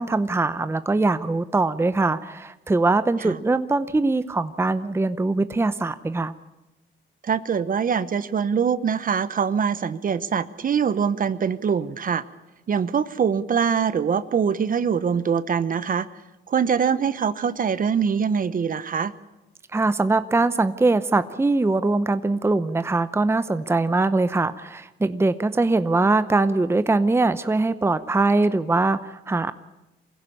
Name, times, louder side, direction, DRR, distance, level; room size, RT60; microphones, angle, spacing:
voice 1, 0.0-6.3 19.7-29.5, right 3 dB, 10° right, 12 dB, 0.7 m, -22 dB
voice 2, 7.2-12.2 12.7-16.1 16.5-19.1, right 7 dB, 45° right, 15 dB, 0.9 m, -23 dB
23.5 x 16.0 x 8.6 m, 1.0 s
cardioid pair, 90°, 20 cm